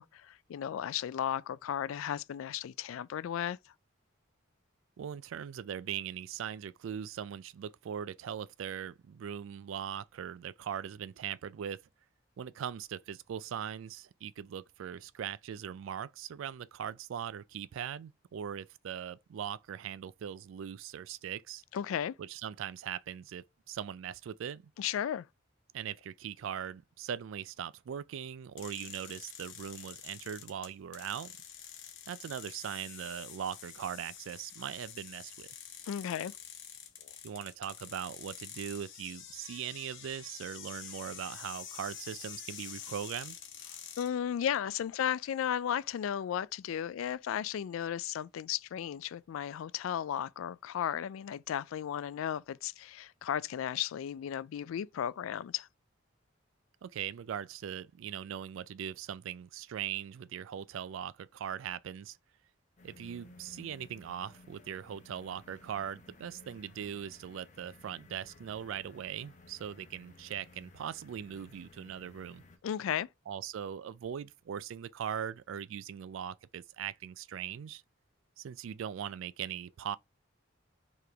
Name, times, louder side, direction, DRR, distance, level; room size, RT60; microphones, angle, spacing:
voice 1, 0.0-3.6 21.7-22.1 24.8-25.3 35.9-36.3 37.0-37.1 44.0-55.7 72.6-73.1, left 9 dB, 80° left, 0.3 m, -35 dB
voice 2, 5.0-11.8 12.4-21.6 22.2-24.7 25.7-31.3 32.1-35.5 37.2-43.4 56.8-62.2 62.8-72.4 73.3-77.8 78.4-80.0, right 9 dB, 75° right, 0.3 m, -40 dB
sound 1, 28.6-44.1, left 9 dB, 65° left, 1.0 m, -47 dB
sound 2, 62.8-72.6, left 2 dB, 35° left, 0.9 m, -57 dB
4.8 x 3.1 x 3.4 m
head